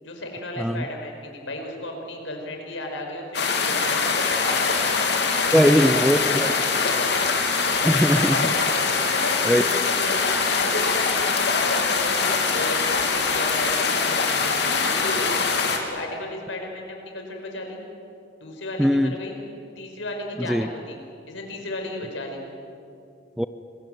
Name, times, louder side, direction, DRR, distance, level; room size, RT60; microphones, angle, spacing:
voice 1, 0.0-4.8 5.4-7.0 8.9-15.3 15.8-17.8 18.4-19.4 19.8-21.0 21.3-22.4, left 1 dB, 80° left, 2 dB, 5.2 m, -34 dB
sound 1, 3.3-15.8, left 4 dB, 60° left, 3.2 m, -23 dB
voice 2, 5.5-6.5 7.8-8.6 9.5-9.6 18.8-19.2 20.4-20.7 23.4-23.5, equal, ahead, 11 dB, 0.5 m, -20 dB
26.5 x 21.5 x 9.3 m, 2.7 s
head